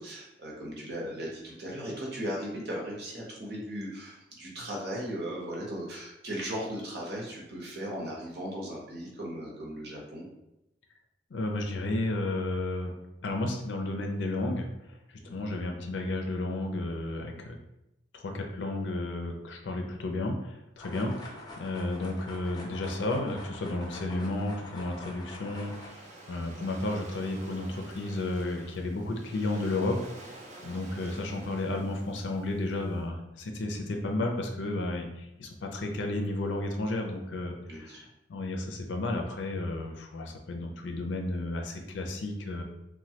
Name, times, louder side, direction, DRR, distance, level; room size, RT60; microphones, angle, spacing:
voice 1, 0.0-10.3 15.2-15.4 30.6-30.8 37.7-38.0, equal, 60° right, -3 dB, 0.8 m, -37 dB
voice 2, 11.3-12.9 13.2-14.7 15.1-17.6 18.1-26.0 26.3-30.0 30.2-30.4 30.6-38.0 38.3-42.6, left 2 dB, 80° left, 3 dB, 0.4 m, -32 dB
sound 1, 20.8-25.9, left 1 dB, 20° left, 0.5 m, -45 dB
Waves surf, 24.7-32.9, right 2 dB, 40° right, 0.4 m, -50 dB
3.1 x 2.2 x 2.8 m, 0.90 s
head